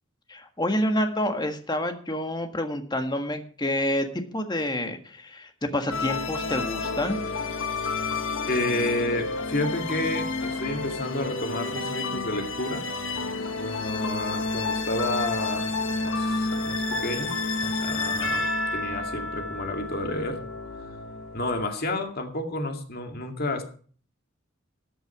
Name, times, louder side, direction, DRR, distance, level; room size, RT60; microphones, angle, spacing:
voice 1, 0.3-7.2, left 1 dB, 20° left, 6 dB, 1.6 m, -28 dB
sound 1, 5.9-21.7, left 3 dB, 65° left, 1.6 m, -30 dB
voice 2, 8.5-12.9 13.6-15.7 16.0-17.3 17.6-18.5 18.7-20.4 21.3-23.6, left 2 dB, 50° left, 4 dB, 2.3 m, -30 dB
13.5 x 7.9 x 5.9 m, 0.44 s
head